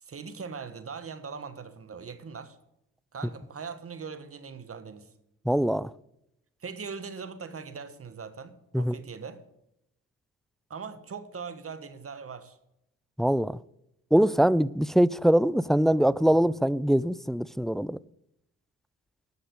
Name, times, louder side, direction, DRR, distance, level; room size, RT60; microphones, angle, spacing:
voice 1, 0.0-2.6 3.1-5.1 6.6-9.4 10.7-12.6, right 5 dB, 45° right, 1.5 m, -40 dB
voice 2, 5.5-5.9 8.7-9.0 13.2-13.6 14.1-18.0, equal, ahead, 0.4 m, -23 dB
10.0 x 7.1 x 8.0 m
supercardioid pair, 55°, 33 cm